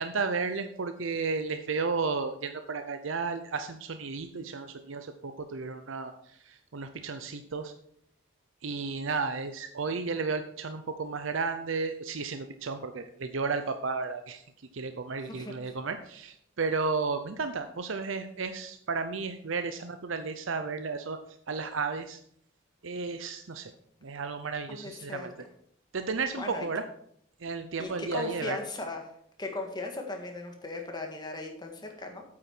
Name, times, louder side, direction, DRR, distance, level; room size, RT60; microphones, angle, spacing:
voice 1, 0.0-7.7 8.6-14.4 14.7-21.2 21.5-22.2 22.8-23.7 24.0-25.3 25.9-26.8 27.4-28.6, right 4 dB, 75° right, 8 dB, 0.7 m, -33 dB
voice 2, 15.2-15.7 24.7-25.3 26.4-26.7 27.8-29.1 29.4-32.2, left 2 dB, 20° left, 3 dB, 1.7 m, -38 dB
8.8 x 8.5 x 4.5 m, 0.68 s
head